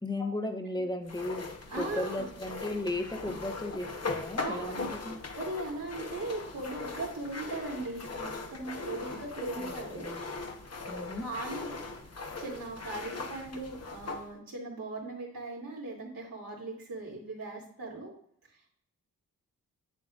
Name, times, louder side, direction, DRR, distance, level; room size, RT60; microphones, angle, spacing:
voice 1, 0.0-5.2 9.6-10.3 10.9-11.3, left 1 dB, 10° left, 6 dB, 1.0 m, -36 dB
sound 1, 1.1-14.3, left 3 dB, 45° left, 1.1 m, -39 dB
voice 2, 1.7-2.3 4.4-4.9 5.3-10.1 11.2-11.8 12.4-18.1 18.5-18.7, right 2 dB, 75° right, -4 dB, 2.8 m, -39 dB
7.7 x 7.4 x 2.5 m, 0.65 s
cardioid pair, 45°, 34 cm